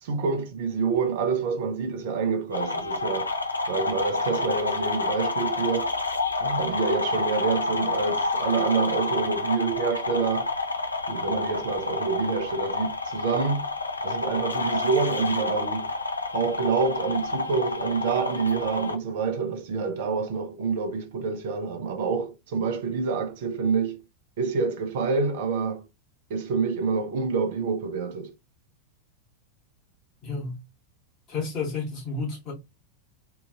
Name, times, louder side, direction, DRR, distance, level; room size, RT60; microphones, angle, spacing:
voice 1, 0.0-3.3 3.7-5.9 6.4-10.5 11.1-13.7 14.0-15.9 16.3-24.0 24.4-25.9 26.3-28.3, right 5 dB, 55° right, 0.6 m, -27 dB
sound 1, 2.5-18.9, left 3 dB, 80° left, 0.4 m, -29 dB
voice 2, 30.2-30.6 31.3-32.5, left 4 dB, 35° left, 1.1 m, -31 dB
2.9 x 2.5 x 2.3 m
figure-of-eight pair, 90°, 0 cm